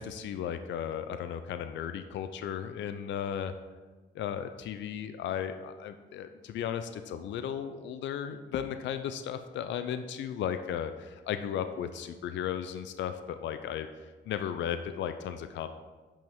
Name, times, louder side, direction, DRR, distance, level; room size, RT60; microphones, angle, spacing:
voice 1, 0.0-3.5 4.1-15.7, left 9 dB, 65° left, 9 dB, 0.4 m, -35 dB
8.5 x 5.3 x 3.6 m, 1.3 s
cardioid pair, 90°, 20 cm